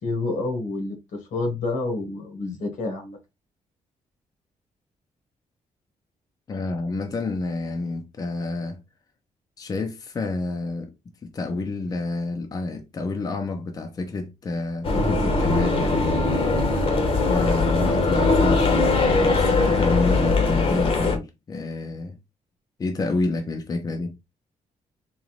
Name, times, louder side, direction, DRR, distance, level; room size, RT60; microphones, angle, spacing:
voice 1, 0.0-3.2, left 2 dB, 80° left, 1.6 m, -28 dB
voice 2, 6.5-8.8 9.6-10.9 11.2-17.0 17.3-22.2 22.8-24.1, left 3 dB, 30° left, 0.5 m, -29 dB
sound 1, 14.8-21.2, left 3 dB, 45° left, 0.9 m, -21 dB
3.9 x 3.0 x 3.1 m
wide cardioid pair, 160°, 13 cm